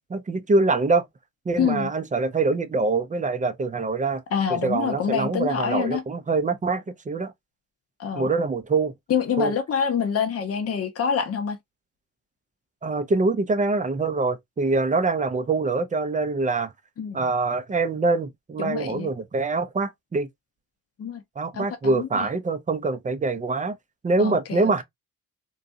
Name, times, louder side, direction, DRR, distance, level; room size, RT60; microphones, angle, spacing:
voice 1, 0.1-1.1 1.5-4.2 4.5-7.3 8.1-8.9 9.4-9.5 12.8-16.7 17.1-20.3 21.4-23.8 24.0-24.8, right 3 dB, 20° right, 0.5 m, -24 dB
voice 2, 1.6-1.9 4.3-6.0 8.0-8.3 9.1-11.6 17.0-17.3 18.6-19.1 21.0-21.2 21.5-22.3 24.2-24.8, left 7 dB, 35° left, 0.7 m, -26 dB
2.6 x 2.3 x 2.5 m
hypercardioid pair, 55°, 39 cm